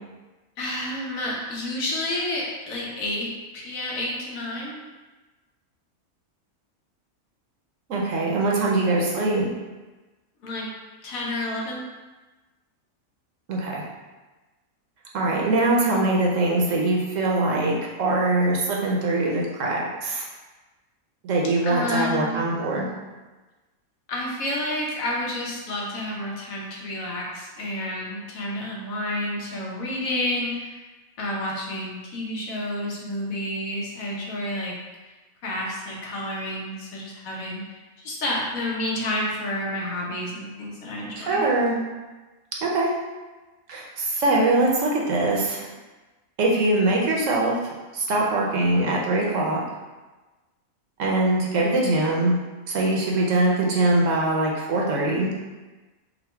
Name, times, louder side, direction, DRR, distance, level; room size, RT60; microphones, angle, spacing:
voice 1, 0.6-4.8 10.4-10.7 11.0-11.8 21.6-22.4 24.1-30.8 31.2-34.7 35.4-37.6 38.0-41.4, left 1 dB, 70° left, -3 dB, 1.3 m, -30 dB
voice 2, 7.9-9.5 13.5-13.8 15.1-20.2 21.2-22.9 41.2-41.7 42.6-42.9 43.7-45.6 46.4-47.5 47.9-49.6 51.0-52.4 52.7-55.3, right 2 dB, 65° right, -3 dB, 1.0 m, -22 dB
4.0 x 2.2 x 4.4 m, 1.2 s
omnidirectional pair, 1.5 m